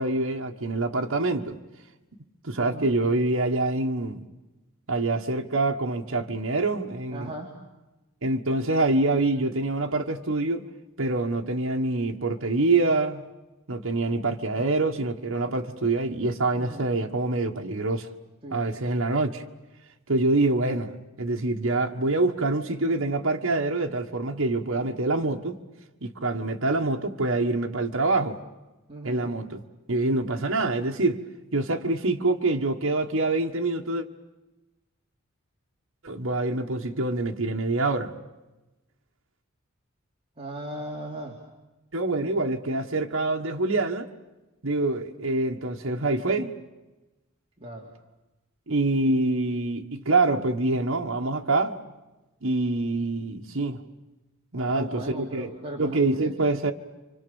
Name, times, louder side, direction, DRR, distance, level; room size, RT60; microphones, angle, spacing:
voice 1, 0.0-1.5 2.4-4.2 4.9-7.3 8.2-10.6 11.0-13.2 13.7-18.1 18.5-19.4 20.1-20.9 21.2-25.6 26.0-28.4 29.0-29.6 29.9-31.2 31.5-34.0 36.0-38.1 41.9-44.1 44.6-46.5 48.7-51.7 52.4-53.8 54.5-55.5 55.8-56.7, right 2 dB, 70° right, 1.5 m, -25 dB
voice 2, 2.5-2.9 7.1-7.5 16.5-16.9 18.4-18.6 28.9-29.3 40.4-41.4 47.6-47.9 54.5-56.3, right 1 dB, 30° right, 3.1 m, -38 dB
30.0 x 25.5 x 7.1 m
head